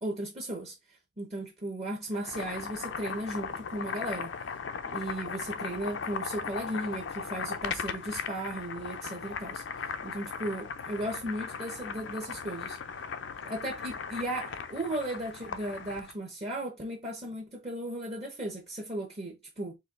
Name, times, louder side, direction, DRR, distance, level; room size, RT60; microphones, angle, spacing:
voice 1, 0.0-4.5 4.9-12.8 13.4-19.8, right 1 dB, 30° right, 0.9 m, -36 dB
Boiling, 2.1-16.1, left 6 dB, 65° left, 0.5 m, -38 dB
4.3 x 2.8 x 3.7 m
head